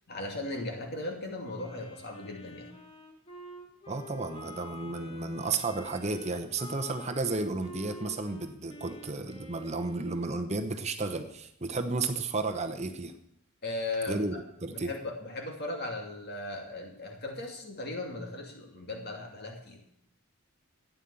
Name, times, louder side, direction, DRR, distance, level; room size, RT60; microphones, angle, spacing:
voice 1, 0.1-2.7 13.6-14.3 14.7-19.8, left 2 dB, 50° left, 2 dB, 2.6 m, -37 dB
Wind instrument woodwind instrument, 1.6-10.4, left 1 dB, 25° left, 1.9 m, -48 dB
voice 2, 3.9-13.1 14.1-14.3 14.6-14.9, right 3 dB, 30° right, 6 dB, 0.9 m, -33 dB
13.5 x 9.2 x 7.0 m, 0.74 s
head